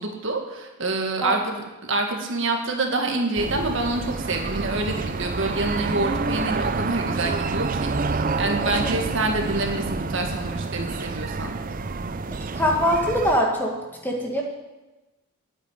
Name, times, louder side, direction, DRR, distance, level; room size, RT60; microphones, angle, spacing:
voice 1, 0.0-11.5, right 2 dB, 55° right, 2 dB, 1.9 m, -27 dB
sound 1, 3.4-13.4, right 3 dB, 40° right, 0.5 m, -28 dB
voice 2, 12.5-13.8 14.0-14.4, equal, 10° left, -1 dB, 1.8 m, -23 dB
8.9 x 8.9 x 9.2 m, 1.1 s
head